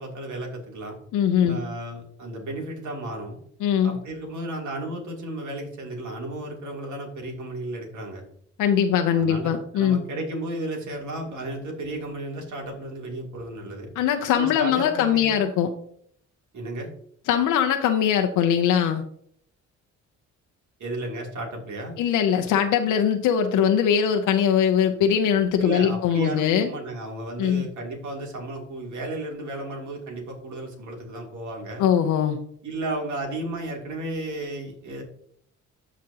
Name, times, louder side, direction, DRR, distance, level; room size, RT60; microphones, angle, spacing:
voice 1, 0.0-0.9 1.4-3.4 3.8-8.2 9.1-13.9 14.3-15.4 16.5-16.9 20.8-22.0 25.6-31.8 32.6-35.0, right 2 dB, 70° right, 0 dB, 3.0 m, -33 dB
voice 2, 1.1-1.6 3.6-4.0 8.6-10.0 14.0-15.7 17.3-19.0 22.0-26.7 27.4-27.7 31.8-32.4, left 8 dB, 90° left, 5 dB, 0.7 m, -21 dB
15.5 x 5.1 x 2.9 m, 0.66 s
cardioid pair, 90°, 30 cm